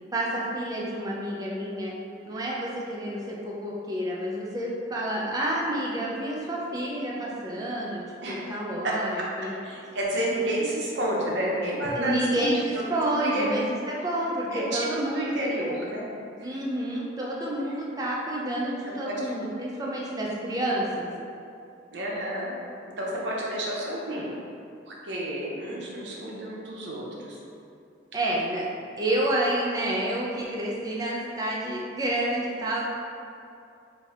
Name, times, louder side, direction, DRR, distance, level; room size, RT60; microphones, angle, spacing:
voice 1, 0.1-1.9 2.3-9.5 12.0-15.4 16.4-21.1 28.1-28.7 29.0-32.8, right 1 dB, 20° right, -4 dB, 0.4 m, -29 dB
voice 2, 8.8-9.3 9.6-12.5 12.9-13.5 14.5-16.1 16.4-16.5 18.8-19.3 21.9-22.5 23.0-24.3 24.9-27.4, right 1 dB, 65° right, -4 dB, 0.6 m, -30 dB
2.6 x 2.4 x 3.2 m, 2.6 s
head